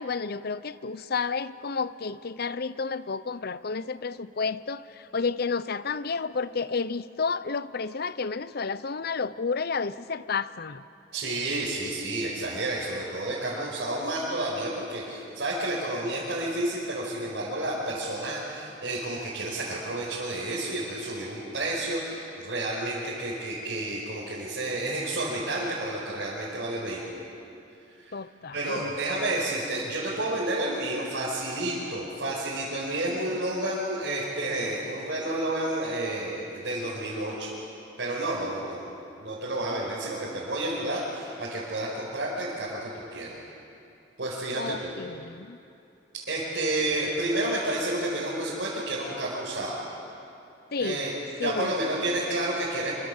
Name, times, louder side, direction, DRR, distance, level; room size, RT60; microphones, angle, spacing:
voice 1, 0.0-10.8 28.1-28.9 44.6-45.6 50.7-51.0 51.4-51.7, left 4 dB, 60° left, 15 dB, 0.7 m, -31 dB
voice 2, 11.1-27.2 28.0-28.1 28.5-37.5 38.0-43.4 44.2-44.9 46.3-49.8 50.8-51.1 51.4-52.9, right 1 dB, 70° right, -7 dB, 5.2 m, -30 dB
26.0 x 25.0 x 7.2 m, 2.7 s
head